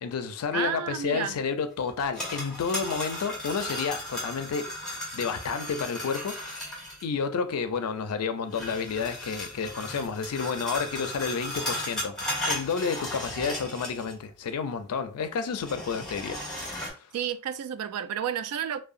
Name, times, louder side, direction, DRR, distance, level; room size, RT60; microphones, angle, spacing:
voice 1, 0.0-4.7 5.1-6.7 7.0-12.2 12.5-16.4 16.7-16.8, left 5 dB, 85° left, 0.4 m, -30 dB
voice 2, 0.5-1.4 17.1-18.8, right 9 dB, 80° right, 0.3 m, -31 dB
sound 1, 1.9-7.0 8.5-14.2 14.5-14.6 15.5-16.9, left 1 dB, ahead, 0.8 m, -35 dB
2.7 x 2.1 x 2.5 m
head